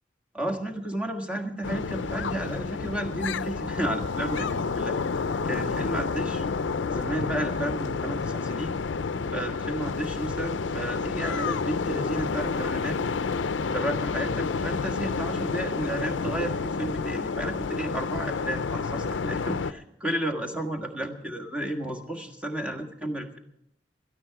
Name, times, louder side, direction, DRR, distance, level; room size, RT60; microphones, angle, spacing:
voice 1, 0.3-5.0 5.4-6.4 6.9-8.7 9.3-13.0 13.6-23.4, right 1 dB, 5° right, 2 dB, 1.6 m, -32 dB
sound 1, 1.6-19.7, left 4 dB, 90° left, 0.5 m, -29 dB
17.5 x 13.5 x 4.8 m, 0.77 s
head